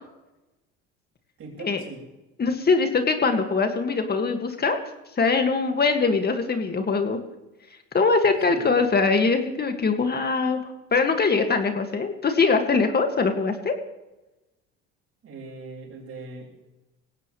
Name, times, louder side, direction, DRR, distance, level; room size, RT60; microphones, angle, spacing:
voice 1, 1.4-2.0 8.4-8.7 15.2-16.5, right 3 dB, 45° right, 0 dB, 6.1 m, -40 dB
voice 2, 2.4-4.8 5.2-7.2 7.9-13.7, left 4 dB, 30° left, 6 dB, 2.1 m, -22 dB
19.5 x 17.0 x 3.3 m, 1.0 s
supercardioid pair, 80°, 31 cm